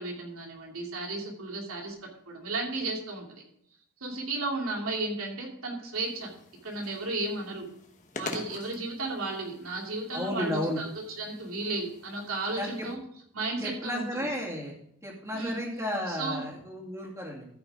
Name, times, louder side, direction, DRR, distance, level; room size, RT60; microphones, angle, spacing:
voice 1, 0.0-1.9 2.3-3.4 4.0-6.3 6.6-7.7 8.2-13.0 13.3-14.3 15.3-15.6 16.1-16.4, right 2 dB, 75° right, -1 dB, 2.9 m, -34 dB
sound 1, 5.9-12.9, left 3 dB, 35° left, 1.2 m, -46 dB
voice 2, 10.1-10.8 12.6-12.9 13.6-14.7 15.0-17.4, equal, 15° right, -2 dB, 2.3 m, -33 dB
13.5 x 5.9 x 5.0 m, 0.71 s
head